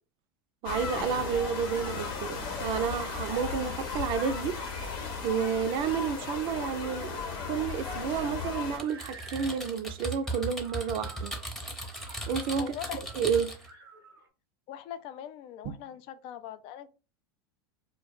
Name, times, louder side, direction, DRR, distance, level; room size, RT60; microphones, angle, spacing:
sound 1, 0.6-8.8, left 5 dB, 70° left, 0.9 m, -36 dB
voice 1, 0.6-4.6 4.9-5.0 5.2-11.3 12.3-12.7 13.1-13.5 15.6-15.7, right 7 dB, 50° right, 0.4 m, -30 dB
sound 2, 3.8-14.3, right 3 dB, 90° right, 0.7 m, -52 dB
Typing, 8.8-13.7, right 1 dB, ahead, 0.7 m, -37 dB
voice 2, 12.6-13.0 14.7-16.9, left 10 dB, 50° left, 0.4 m, -41 dB
2.3 x 2.0 x 3.8 m
hypercardioid pair, 95°, 12 cm